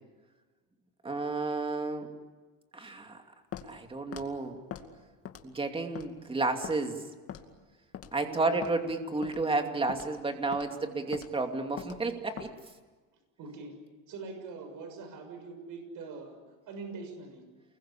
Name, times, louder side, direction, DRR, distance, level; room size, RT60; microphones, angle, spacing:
voice 1, 1.0-2.1 2.7-3.2 3.7-4.6 5.4-7.0 8.1-12.5, right 3 dB, 15° right, 5 dB, 2.6 m, -31 dB
Walk footsteps, 3.5-3.7 4.1-4.3 4.7-4.9 5.3-5.6 6.0-6.1 6.6-6.8 7.3-7.5 7.9-8.1 8.6-8.8 9.2-9.4 9.9-10.1 10.5-10.7 11.1-11.3 11.8-12.0 12.4-12.5, left 9 dB, 40° left, 2.4 m, -41 dB
voice 2, 8.2-8.6 10.6-10.9 13.4-13.7 14.1-16.3 16.7-17.4, right 4 dB, 60° right, 5 dB, 6.6 m, -43 dB
29.0 x 21.5 x 8.5 m, 1.3 s
cardioid pair, 135°, 36 cm